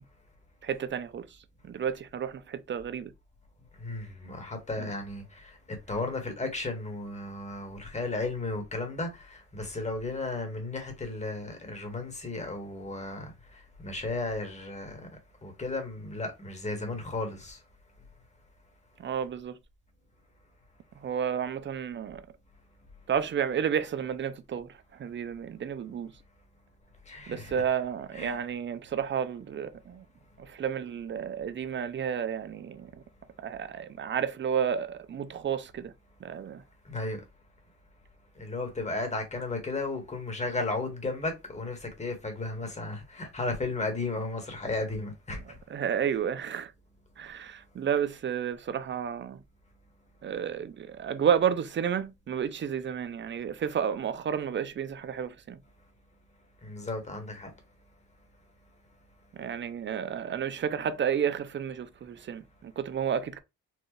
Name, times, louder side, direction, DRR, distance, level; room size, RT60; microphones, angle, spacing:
voice 1, 0.6-1.3 1.7-3.1 4.8-4.9 19.0-19.5 21.0-22.2 23.1-24.7 25.0-26.1 27.3-30.0 30.6-32.9 33.4-35.9 36.2-36.6 45.7-46.7 47.2-49.4 50.2-55.6 59.3-63.4, right 8 dB, 40° right, 0.5 m, -31 dB
voice 2, 3.8-15.1 15.4-17.6 27.1-27.6 28.1-28.4 36.8-37.2 38.4-45.6 56.6-57.5, left 2 dB, 20° left, 1.6 m, -34 dB
4.4 x 2.5 x 3.1 m
cardioid pair, 90°, 30 cm